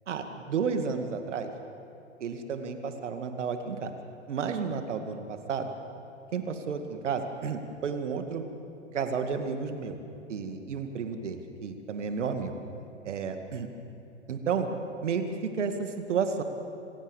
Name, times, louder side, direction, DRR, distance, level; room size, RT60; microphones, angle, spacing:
voice 1, 0.1-1.5 2.2-3.9 4.3-5.7 6.3-8.4 8.9-10.0 10.3-12.5 13.0-13.7 14.3-14.7 15.0-16.4, right 6 dB, 70° right, 7 dB, 2.3 m, -32 dB
26.0 x 16.0 x 7.3 m, 2.7 s
figure-of-eight pair, 105°, 37 cm